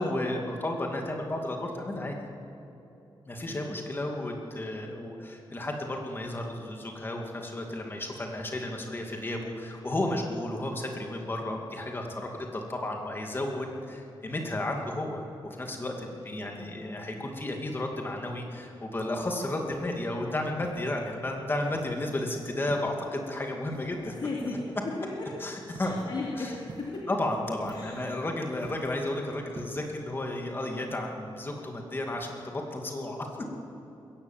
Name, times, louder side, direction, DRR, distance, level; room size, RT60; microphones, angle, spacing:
voice 1, 0.0-2.2 3.3-24.1 25.4-26.0 26.4-26.5 27.1-32.4 32.7-33.3, left 1 dB, 25° left, 1 dB, 2.4 m, -33 dB
voice 2, 16.3-16.8 24.0-25.3 25.8-27.1 27.7-28.1, left 3 dB, 55° left, -5 dB, 3.0 m, -36 dB
sound 1, 19.7-20.1 20.6-21.2 21.7-22.1 22.7-23.1 23.7-24.2 25.7-26.1 26.7-27.1 27.6-28.1 28.6-29.1 29.5-29.9, right 4 dB, 45° right, 1.7 m, -46 dB
21.5 x 17.0 x 7.4 m, 2.9 s
wide cardioid pair, 150°, 9 cm